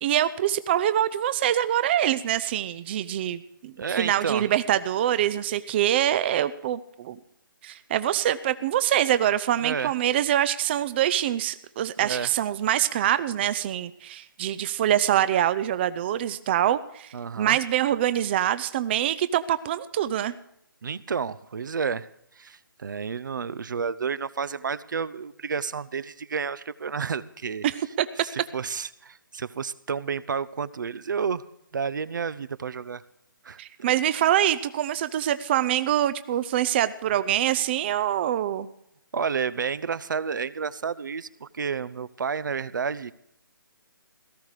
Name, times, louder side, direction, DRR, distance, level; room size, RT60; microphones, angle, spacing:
voice 1, 0.0-7.2 7.6-20.3 27.6-28.1 33.6-38.7, right 11 dB, 30° right, 15 dB, 0.5 m, -25 dB
voice 2, 3.8-4.5 9.6-9.9 12.0-12.3 17.1-17.6 20.8-22.1 22.4-27.7 28.2-31.4 31.7-33.0 33.4-33.6 39.1-43.1, right 6 dB, 60° right, 17 dB, 0.8 m, -30 dB
17.5 x 14.5 x 5.0 m, 0.76 s
figure-of-eight pair, 145°, 12 cm